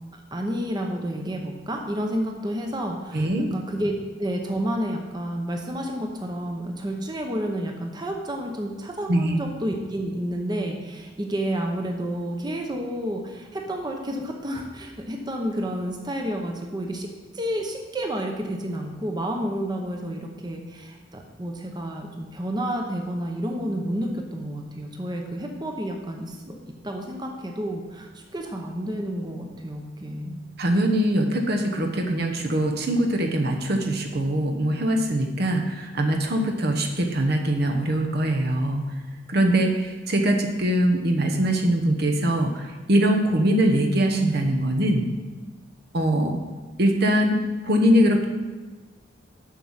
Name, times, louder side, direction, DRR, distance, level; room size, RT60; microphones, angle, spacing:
voice 1, 0.1-26.6 26.8-30.4, equal, 25° right, 2 dB, 0.8 m, -30 dB
voice 2, 3.1-3.5 9.1-9.3 30.6-38.9 39.3-45.1 45.9-46.4 46.8-48.2, right 1 dB, 55° right, 3 dB, 0.9 m, -22 dB
7.5 x 6.3 x 5.6 m, 1.3 s
head